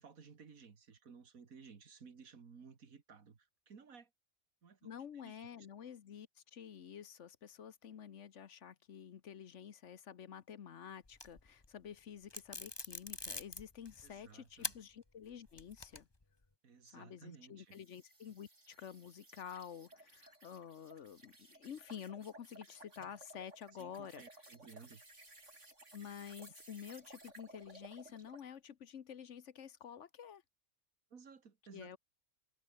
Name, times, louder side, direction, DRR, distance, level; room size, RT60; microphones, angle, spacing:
voice 1, 0.0-4.1 4.6-4.9 5.2-5.5 14.0-14.7 16.6-17.8 23.7-25.0 31.1-32.0, right 5 dB, 90° right, 2.3 m, -57 dB
voice 2, 4.8-16.1 16.9-24.2 25.9-30.4 31.7-32.0, left 8 dB, 60° left, 1.2 m, -50 dB
sound 1, 11.1-11.7 12.3-14.1 14.6-14.8 15.2-16.2, left 2 dB, 20° left, 1.6 m, -44 dB
sound 2, 17.7-28.5, right 2 dB, 60° right, 6.6 m, -59 dB
omnidirectional pair, 1.4 m